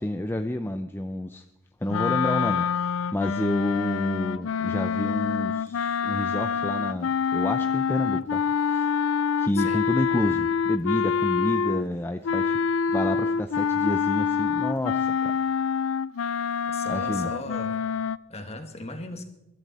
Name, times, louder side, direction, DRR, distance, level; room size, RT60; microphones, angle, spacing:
voice 1, 0.0-1.4 1.8-9.0 9.4-12.6 12.9-15.3 16.9-17.3, left 1 dB, 10° left, 7 dB, 0.5 m, -29 dB
sound 1, 1.9-11.9 12.2-18.2, left 6 dB, 90° left, 0.4 m, -26 dB
voice 2, 16.6-17.8 18.3-19.2, left 2 dB, 30° left, 6 dB, 1.7 m, -37 dB
21.0 x 12.5 x 4.2 m, 0.89 s
head